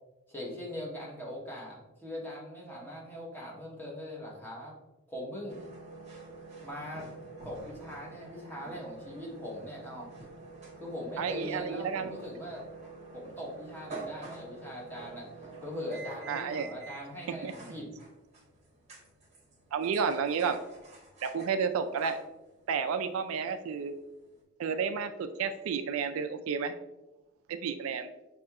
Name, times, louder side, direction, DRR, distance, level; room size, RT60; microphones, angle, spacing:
voice 1, 0.3-4.7 5.1-5.6 6.6-7.1 7.4-10.1 10.8-12.6 13.1-15.3 15.6-17.9, left 1 dB, 10° left, -4 dB, 1.0 m, -41 dB
sound 1, 5.5-24.4, right 3 dB, 30° right, 0.9 m, -48 dB
voice 2, 11.2-12.2 16.3-16.7 17.4-17.5 19.7-20.6 21.2-22.2 22.7-23.9 24.6-26.7 27.5-28.1, right 6 dB, 75° right, 9 dB, 0.3 m, -31 dB
6.2 x 2.8 x 2.3 m, 1.0 s
head